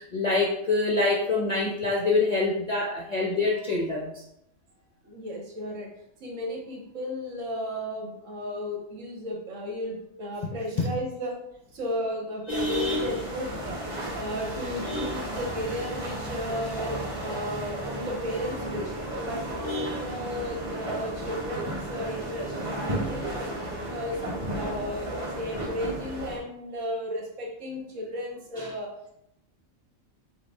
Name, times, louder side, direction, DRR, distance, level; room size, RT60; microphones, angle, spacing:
voice 1, 0.0-4.2 10.4-11.0 12.5-13.2 14.8-15.2 19.6-20.1 28.5-28.7, left 3 dB, 50° left, -2 dB, 0.5 m, -27 dB
voice 2, 5.0-5.9 6.2-11.3 11.7-13.8 14.1-18.9 19.2-23.5 23.9-28.9, equal, 65° right, 1 dB, 1.3 m, -34 dB
sound 1, 12.5-26.4, right 1 dB, 25° right, 1.3 m, -34 dB
6.4 x 2.3 x 3.4 m, 0.80 s
omnidirectional pair, 1.4 m